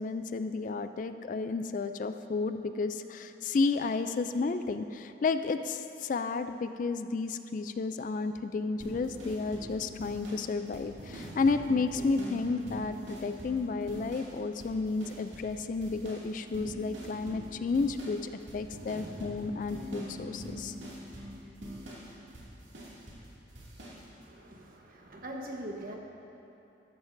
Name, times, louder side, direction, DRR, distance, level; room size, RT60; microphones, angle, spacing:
voice 1, 0.0-20.7, left 4 dB, 45° left, 9 dB, 0.3 m, -32 dB
sound 1, 8.8-14.3 14.6-15.6 15.8-23.3 23.5-24.0, equal, 75° right, 2.4 m, -43 dB
voice 2, 24.2-26.0, right 1 dB, 50° right, 0 dB, 1.2 m, -42 dB
13.5 x 12.5 x 2.6 m, 2.8 s
head